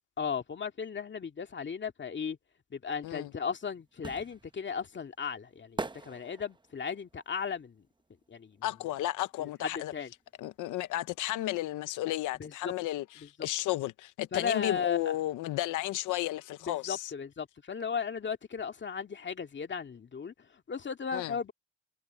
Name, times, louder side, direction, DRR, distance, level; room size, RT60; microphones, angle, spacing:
voice 1, 0.2-2.4 2.7-7.8 8.3-8.7 9.4-10.1 12.4-12.7 13.2-13.5 14.3-15.2 16.6-21.5, left 6 dB, 40° left, 2.1 m, -36 dB
sound 1, 3.2-9.0 9.3-10.9 11.1-11.2, right 3 dB, 15° right, 1.0 m, -43 dB
voice 2, 8.6-9.9 10.4-17.1 21.1-21.3, left 15 dB, 90° left, 0.8 m, -33 dB
cardioid pair, 90°, 30 cm